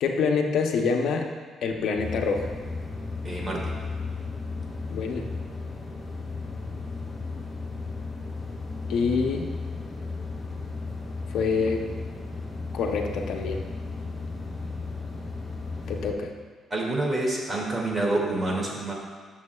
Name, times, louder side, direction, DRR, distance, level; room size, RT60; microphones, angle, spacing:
voice 1, 0.0-1.3 1.6-2.5 4.9-5.3 8.9-9.5 11.3-11.8 12.7-13.7 15.9-16.3, left 5 dB, 75° left, 3 dB, 0.7 m, -26 dB
sound 1, 2.0-16.1, left 3 dB, 30° left, 1.7 m, -35 dB
voice 2, 3.2-3.7 16.7-18.9, right 2 dB, 30° right, -2 dB, 2.2 m, -27 dB
12.5 x 6.9 x 2.3 m, 1.5 s
cardioid pair, 90°, 0 cm